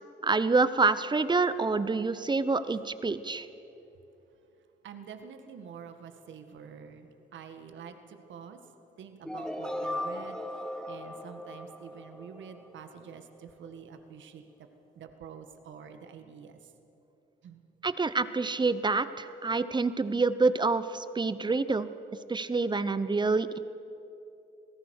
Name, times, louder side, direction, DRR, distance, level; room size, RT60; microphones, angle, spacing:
voice 1, 0.2-3.5 17.8-21.9 22.3-23.6, right 3 dB, 20° right, 14 dB, 0.9 m, -27 dB
voice 2, 4.8-8.6 9.0-10.4 10.9-14.4 15.0-16.6 17.4-17.6, right 7 dB, 70° right, 7 dB, 1.8 m, -47 dB
sound 1, 9.2-13.2, left 1 dB, 5° left, 1.4 m, -38 dB
26.0 x 18.0 x 6.5 m, 2.9 s
cardioid pair, 90°, 20 cm